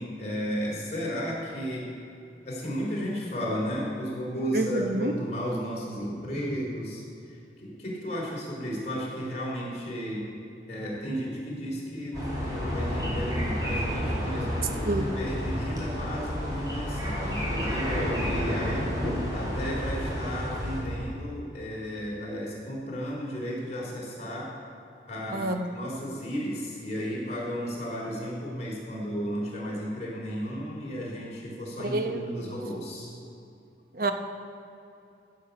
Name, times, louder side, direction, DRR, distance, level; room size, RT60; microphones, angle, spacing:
voice 1, 0.0-1.9 2.5-10.3 10.7-18.9 19.3-24.5 25.1-33.2, equal, 40° left, -4 dB, 3.5 m, -34 dB
voice 2, 4.5-5.1 14.8-15.1 18.6-18.7 25.3-25.6 31.9-32.5 33.9-34.1, right 2 dB, 55° right, 6 dB, 1.0 m, -28 dB
sound 1, 12.1-20.8, equal, 20° right, 3.7 m, -30 dB
15.0 x 8.3 x 5.8 m, 2.7 s
head